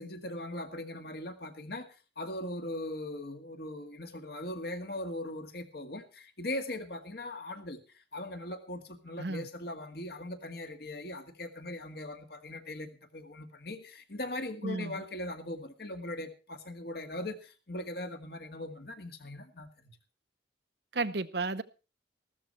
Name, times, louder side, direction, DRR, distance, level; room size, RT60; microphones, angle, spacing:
voice 1, 0.0-1.9 2.2-20.0, left 1 dB, 55° left, 1.9 m, -40 dB
voice 2, 14.6-15.0 20.9-21.6, right 3 dB, 65° right, 0.9 m, -33 dB
14.5 x 13.0 x 4.3 m
head